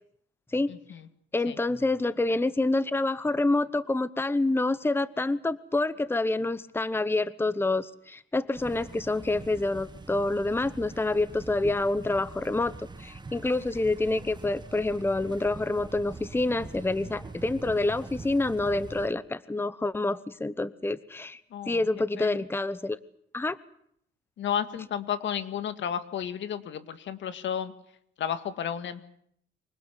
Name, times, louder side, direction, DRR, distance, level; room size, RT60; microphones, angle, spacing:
voice 1, 0.7-1.1 1.4-1.6 21.5-21.9 22.2-22.4 24.4-27.7 28.2-29.0, left 9 dB, 70° left, 11 dB, 2.0 m, -32 dB
voice 2, 1.3-21.4 21.7-23.0 23.3-23.6, left 2 dB, 10° left, 16 dB, 0.9 m, -27 dB
sound 1, 8.5-19.1, right 3 dB, 20° right, 1.7 m, -44 dB
25.0 x 19.0 x 8.2 m, 0.68 s
cardioid pair, 90°, 20 cm